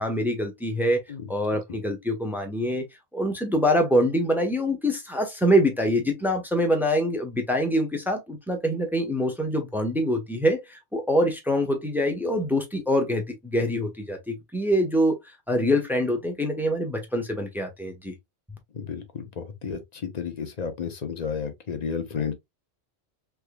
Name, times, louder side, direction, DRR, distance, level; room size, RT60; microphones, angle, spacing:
voice 1, 0.0-1.0 1.3-2.8 3.1-15.2 15.5-18.1, equal, ahead, 0.9 m, -25 dB
voice 2, 18.7-22.3, left 6 dB, 40° left, 0.8 m, -32 dB
3.5 x 3.5 x 2.2 m
omnidirectional pair, 1.1 m